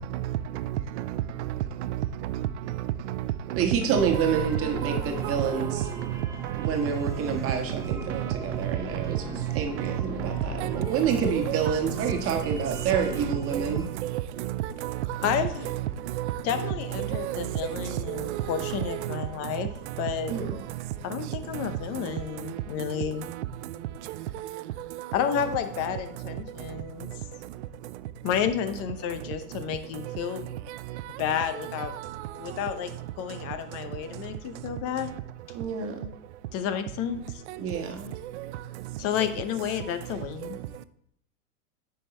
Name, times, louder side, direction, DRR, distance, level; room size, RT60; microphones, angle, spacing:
voice 1, 0.0-1.5 1.8-7.0 7.2-7.5 8.1-8.6 8.9-9.0 9.4-19.2 21.3-21.7 22.1-22.2 22.4-22.9 23.3-23.4 24.3-25.5 30.1-30.2 32.0-32.2 37.5-37.6 38.4-38.5 40.4-40.5, right 13 dB, 50° right, 0.6 m, -32 dB
voice 2, 3.5-5.8 6.5-13.8 20.3-20.5 35.5-36.1 37.6-38.1, right 6 dB, 30° right, 1.6 m, -28 dB
sound 1, 3.9-13.9, right 1 dB, 5° right, 0.6 m, -39 dB
voice 3, 15.2-15.7 16.4-19.7 20.0-20.3 21.0-23.3 25.1-27.1 28.2-30.5 31.2-32.0 32.4-35.1 36.5-37.4 39.0-40.6, left 9 dB, 30° left, 0.8 m, -31 dB
9.3 x 5.7 x 3.3 m
hypercardioid pair, 105°, 45 cm